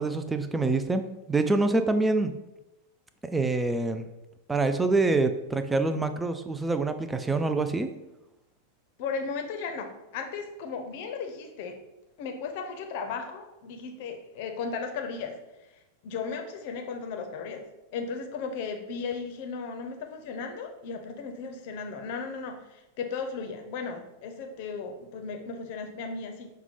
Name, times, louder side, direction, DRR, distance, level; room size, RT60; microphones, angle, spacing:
voice 1, 0.0-2.3 3.3-4.0 4.5-7.9, right 3 dB, 10° right, 8 dB, 0.3 m, -26 dB
voice 2, 9.0-11.8 12.2-15.4 16.0-17.6 17.9-26.5, left 5 dB, 50° left, 5 dB, 0.6 m, -35 dB
5.7 x 2.2 x 3.6 m, 0.96 s
figure-of-eight pair, 90°, 0 cm